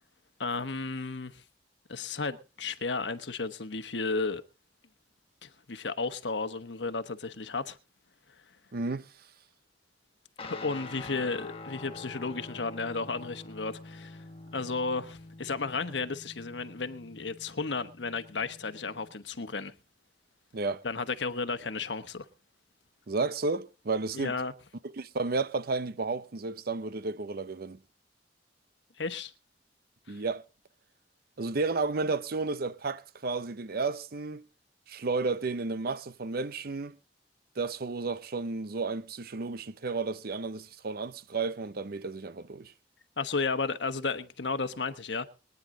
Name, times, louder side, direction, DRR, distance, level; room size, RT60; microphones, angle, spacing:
voice 1, 0.4-1.4 1.9-4.4 5.4-7.8 10.5-14.2 14.5-19.7 20.8-22.3 24.1-24.5 29.0-29.3 30.1-30.2 43.2-45.3, left 4 dB, 85° left, 1.1 m, -33 dB
voice 2, 8.7-9.1 20.5-20.8 23.1-24.3 24.9-27.8 30.1-30.4 31.4-34.4 34.9-37.0 37.6-42.7, right 3 dB, 60° right, 0.7 m, -32 dB
Guitar, 10.4-19.1, left 2 dB, 35° left, 1.6 m, -46 dB
22.5 x 9.8 x 3.8 m
head